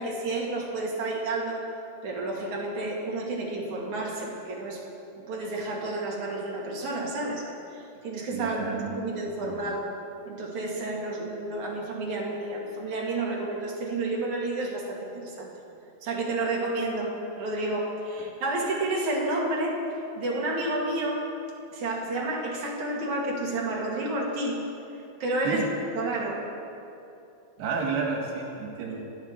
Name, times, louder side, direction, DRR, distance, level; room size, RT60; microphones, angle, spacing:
voice 1, 0.0-1.6 2.0-4.8 5.2-7.4 7.7-9.9 10.3-15.5 16.0-19.8 20.2-21.3 21.7-24.6 25.2-25.7 26.0-26.5 28.9-29.0, right 2 dB, 50° right, -2 dB, 2.8 m, -30 dB
voice 2, 8.3-9.0 9.4-9.7 25.5-25.7 27.6-29.0, right 5 dB, 75° right, 0 dB, 3.8 m, -31 dB
28.5 x 11.0 x 4.4 m, 2.7 s
omnidirectional pair, 5.1 m